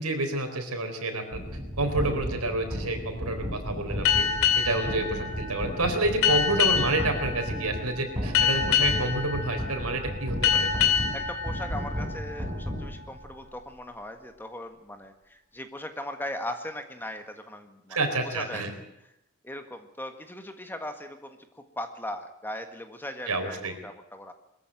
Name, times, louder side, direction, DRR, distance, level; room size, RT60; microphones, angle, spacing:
voice 1, 0.0-1.4 1.8-4.3 4.6-10.7 17.9-18.7 23.3-23.7, right 2 dB, 90° right, 6 dB, 4.2 m, -29 dB
sound 1, 1.3-13.4, equal, 10° right, 7.3 m, -34 dB
sound 2, 4.1-13.2, left 7 dB, 70° left, 3.2 m, -27 dB
voice 2, 11.1-18.0 18.2-18.6 19.4-24.3, left 1 dB, 10° left, 7 dB, 1.6 m, -39 dB
21.5 x 14.5 x 9.0 m, 0.85 s
head